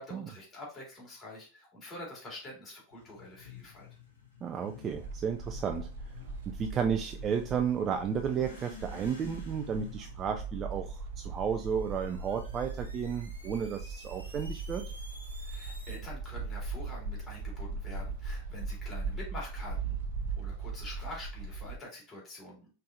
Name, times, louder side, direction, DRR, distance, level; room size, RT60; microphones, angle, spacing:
voice 1, 0.0-3.9 15.4-20.0 20.4-22.7, left 1 dB, 25° left, -3 dB, 2.3 m, -46 dB
Motorcycle / Accelerating revving vroom, 2.9-11.8, left 4 dB, 70° left, 1.2 m, -51 dB
voice 2, 4.4-5.9 6.5-14.8, right 7 dB, 25° right, 5 dB, 0.4 m, -33 dB
sound 1, 4.9-21.8, right 4 dB, 55° right, 0.7 m, -39 dB
sound 2, 11.2-16.0, right 1 dB, 90° right, 1.3 m, -53 dB
5.2 x 3.3 x 2.5 m, 0.36 s
figure-of-eight pair, 90°, 0 cm